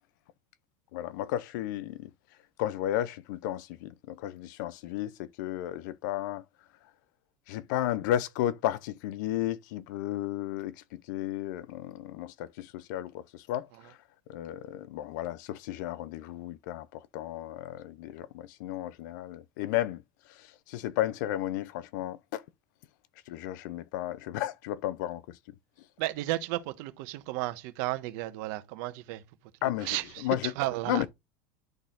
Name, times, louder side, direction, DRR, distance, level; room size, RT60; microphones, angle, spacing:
voice 1, 0.9-2.1 2.6-6.4 7.5-14.0 14.3-20.0 20.3-22.4 23.3-25.4 29.6-30.5 30.9-31.1, left 13 dB, 75° left, 0.7 m, -33 dB
voice 2, 26.0-29.2 29.8-31.1, right 17 dB, 65° right, 1.3 m, -33 dB
11.0 x 4.2 x 4.0 m
supercardioid pair, 140°, 10 cm